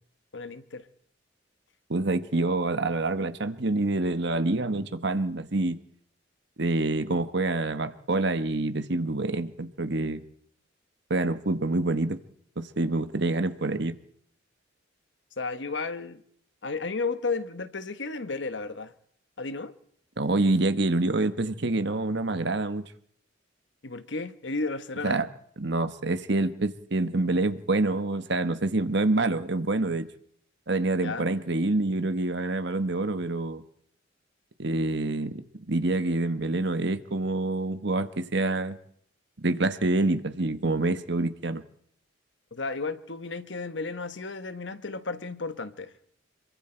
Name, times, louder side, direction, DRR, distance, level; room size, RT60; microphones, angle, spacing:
voice 1, 0.3-0.8 15.4-16.2 16.6-18.9 19.4-19.7 23.8-25.2 31.0-31.2 42.5-45.9, left 3 dB, 65° left, 1.3 m, -33 dB
voice 2, 1.9-5.8 6.6-10.2 11.1-12.2 12.6-14.0 20.2-22.8 25.0-25.3 25.6-30.1 30.7-33.6 34.6-38.8 39.4-41.6, right 2 dB, 60° right, 1.4 m, -27 dB
26.5 x 23.0 x 4.6 m
head